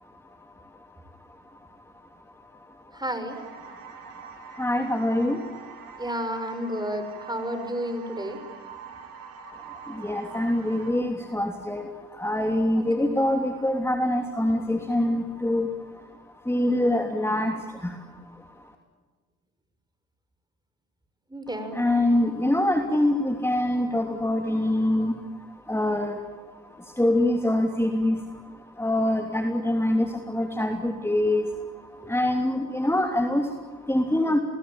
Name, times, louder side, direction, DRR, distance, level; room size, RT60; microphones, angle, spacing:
voice 1, 2.9-3.4 6.0-8.4 12.8-13.1 21.3-21.8, equal, 10° right, 8 dB, 6.3 m, -31 dB
sound 1, 3.3-10.9, right 6 dB, 90° right, 4.8 m, -44 dB
voice 2, 4.5-5.4 9.6-16.1 16.4-18.7 21.7-26.3 26.6-34.4, left 1 dB, 10° left, 4 dB, 3.1 m, -25 dB
27.5 x 20.5 x 9.0 m, 1.5 s
supercardioid pair, 55°, 33 cm